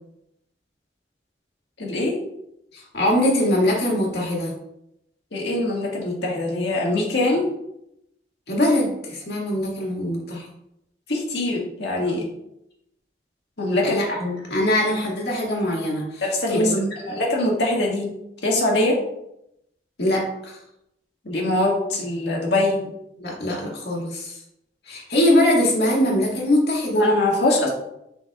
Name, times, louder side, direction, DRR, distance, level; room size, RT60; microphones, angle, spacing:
voice 1, 1.8-2.2 5.3-7.5 11.1-12.2 13.6-14.0 16.2-16.7 17.2-18.1 18.4-19.0 21.3-22.8 26.9-27.7, left 2 dB, 85° left, -2 dB, 1.8 m, -22 dB
voice 2, 2.7-4.5 8.5-10.5 13.8-16.2 16.5-17.2 20.0-20.6 23.2-24.3 24.9-27.0, left 1 dB, 70° left, -3 dB, 2.0 m, -22 dB
7.5 x 5.5 x 2.4 m, 0.81 s
head